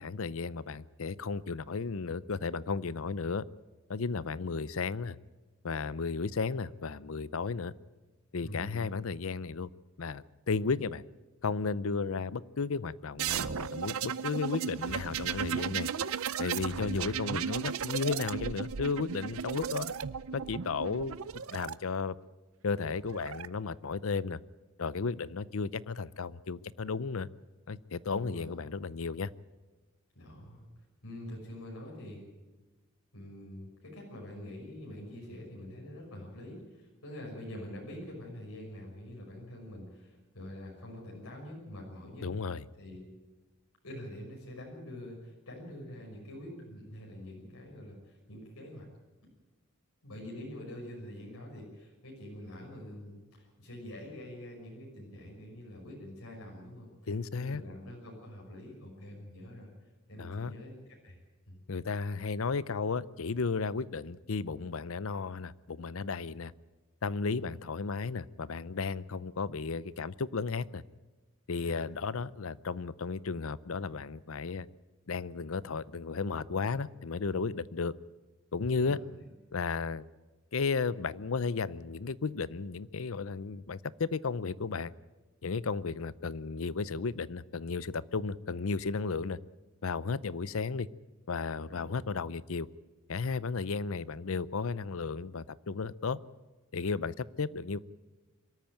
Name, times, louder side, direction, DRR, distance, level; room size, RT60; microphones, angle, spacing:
voice 1, 0.0-3.4 3.9-5.2 5.6-7.7 8.3-9.7 10.0-11.0 11.4-15.9 16.4-19.9 20.3-21.2 21.5-22.2 22.6-24.4 24.8-27.3 27.7-29.3 42.2-42.6 57.1-57.6 60.2-60.5 61.7-66.5 67.0-70.8 71.5-74.7 75.1-77.9 78.5-79.0 79.5-80.0 80.5-84.9 85.4-89.4 89.8-90.9 91.3-92.7 93.1-96.2 96.7-97.8, left 4 dB, 70° left, 19 dB, 0.6 m, -34 dB
voice 2, 8.4-9.0 16.6-17.0 28.1-28.5 30.1-30.7 31.0-32.3 33.1-42.3 42.7-43.0 43.8-48.9 49.2-49.3 50.0-56.9 57.3-59.7 60.1-60.7 61.0-61.2 61.5-61.6 67.3-67.5 71.6-71.9 78.8-79.0 91.6-92.1, left 1 dB, 90° left, -2 dB, 6.0 m, -45 dB
sound 1, 13.2-21.7 22.8-23.5, right 7 dB, 75° right, 0.6 m, -35 dB
23.5 x 13.5 x 9.1 m, 1.2 s
head